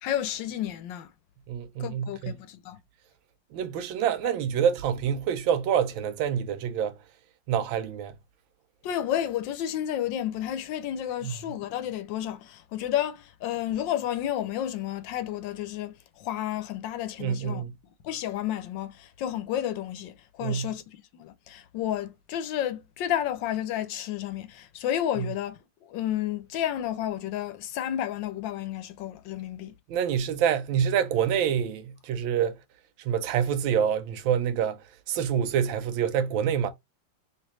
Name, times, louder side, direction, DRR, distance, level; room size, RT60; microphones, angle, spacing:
voice 1, 0.0-1.1 1.8-2.8 8.8-17.6 18.0-29.7, left 11 dB, 80° left, 1.3 m, -31 dB
voice 2, 1.5-2.4 3.5-7.0 7.5-8.1 11.2-11.3 17.2-17.7 20.4-20.7 25.2-25.3 29.9-32.6 33.0-36.7, right 8 dB, 90° right, 1.4 m, -27 dB
3.3 x 3.0 x 3.0 m
omnidirectional pair, 2.1 m